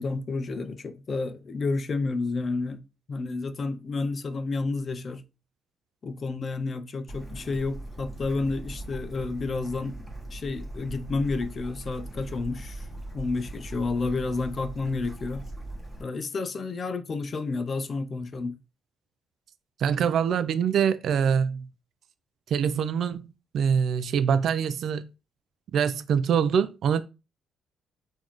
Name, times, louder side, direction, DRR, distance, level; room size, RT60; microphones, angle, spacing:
voice 1, 0.0-2.8 3.1-5.2 6.0-10.0 10.3-12.9 13.1-15.5 16.0-18.6, left 3 dB, 45° left, 0.4 m, -30 dB
Bird / Stream, 7.1-16.0, right 1 dB, 15° left, 1.3 m, -40 dB
voice 2, 19.8-21.7 22.5-25.1 25.7-27.0, right 7 dB, 65° right, 0.3 m, -24 dB
3.8 x 2.6 x 3.0 m
cardioid pair, 90°, 0 cm